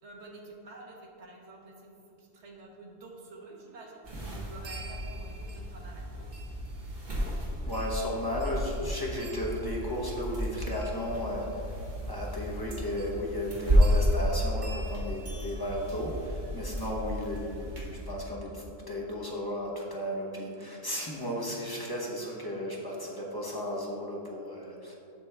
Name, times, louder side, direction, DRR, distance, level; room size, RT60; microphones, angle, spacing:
voice 1, 0.0-1.9 2.2-6.4, right 2 dB, 65° right, -1 dB, 1.3 m, -49 dB
sound 1, 4.0-18.1, equal, 40° right, 1.1 m, -32 dB
voice 2, 7.7-11.7 12.0-24.9, equal, 20° left, -3 dB, 0.9 m, -34 dB
sound 2, 9.5-12.8 13.5-16.8, left 1 dB, 80° left, 1.1 m, -44 dB
7.3 x 6.0 x 3.4 m, 2.8 s
omnidirectional pair, 1.3 m